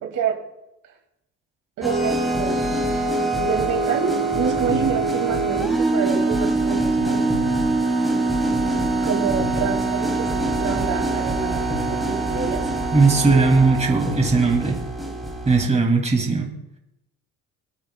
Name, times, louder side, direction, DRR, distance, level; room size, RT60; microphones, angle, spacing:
voice 1, 0.0-0.4 1.8-2.7 3.4-7.3 9.0-11.6 11.9-12.7, right 7 dB, 65° right, 1 dB, 2.2 m, -27 dB
sound 1, 1.8-15.7, right 2 dB, ahead, 2.5 m, -23 dB
sound 2, 4.4-5.7 7.0-8.2 9.4-10.3 11.7-12.7 14.1-14.4, left 2 dB, 20° left, 3.2 m, -34 dB
voice 2, 12.9-14.8 15.5-16.5, right 4 dB, 20° right, 2 dB, 2.3 m, -18 dB
24.5 x 8.7 x 2.2 m, 0.90 s
cardioid pair, 90°, 33 cm